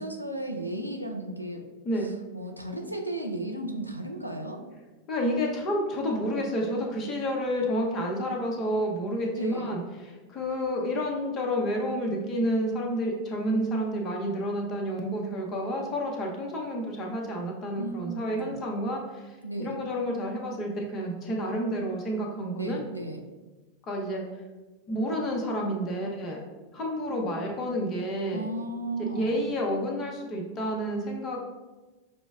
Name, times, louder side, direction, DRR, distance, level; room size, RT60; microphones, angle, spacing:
voice 1, 0.0-1.7 2.0-4.7 9.3-9.7 17.8-18.0 18.4-18.6 19.4-19.8 22.6-23.3 28.3-29.4, right 1 dB, 90° right, 2 dB, 0.4 m, -35 dB
voice 2, 5.1-19.3 19.6-22.8 23.9-24.2 24.9-26.4 26.7-28.5 29.0-31.4, equal, 30° left, 0 dB, 0.7 m, -30 dB
5.9 x 2.0 x 2.3 m, 1.2 s
figure-of-eight pair, 90°, 0 cm